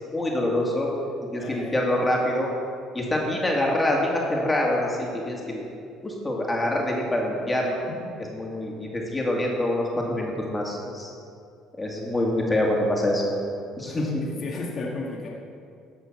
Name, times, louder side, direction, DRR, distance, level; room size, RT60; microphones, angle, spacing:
voice 1, 0.1-0.9 1.3-2.5 2.9-5.6 6.0-7.8 8.3-11.1 11.8-13.4 13.8-14.2, left 1 dB, 15° left, -2 dB, 2.3 m, -25 dB
voice 2, 1.4-1.7 8.0-8.1 13.8-15.3, left 3 dB, 50° left, -2 dB, 1.7 m, -34 dB
13.5 x 5.6 x 6.1 m, 2.5 s
supercardioid pair, 90°, 0 cm